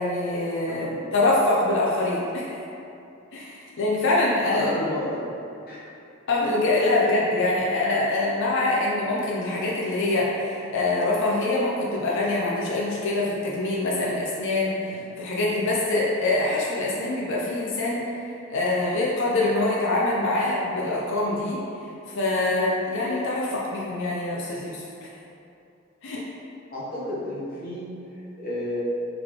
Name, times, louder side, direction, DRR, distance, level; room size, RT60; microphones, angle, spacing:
voice 1, 0.0-0.9 1.1-2.6 3.3-4.7 6.3-18.2 18.5-21.6 22.1-24.8 26.0-26.2, left 2 dB, 60° left, -4 dB, 0.5 m, -24 dB
voice 2, 0.7-1.0 4.5-5.2 5.7-5.8 26.7-28.9, left 1 dB, 45° left, -9 dB, 1.2 m, -31 dB
3.8 x 3.3 x 3.6 m, 2.7 s
head